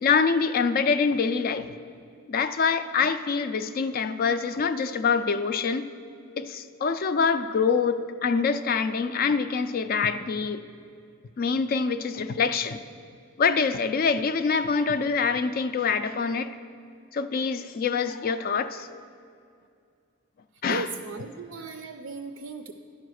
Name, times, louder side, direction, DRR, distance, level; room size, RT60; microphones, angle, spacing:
voice 1, 0.0-1.8 2.3-5.9 6.4-10.6 11.4-12.8 13.4-16.5 17.1-18.9 20.6-20.9, left 5 dB, 45° left, 11 dB, 0.3 m, -25 dB
voice 2, 20.7-22.7, right 4 dB, 70° right, 6 dB, 0.4 m, -36 dB
10.5 x 4.9 x 6.3 m, 2.3 s
head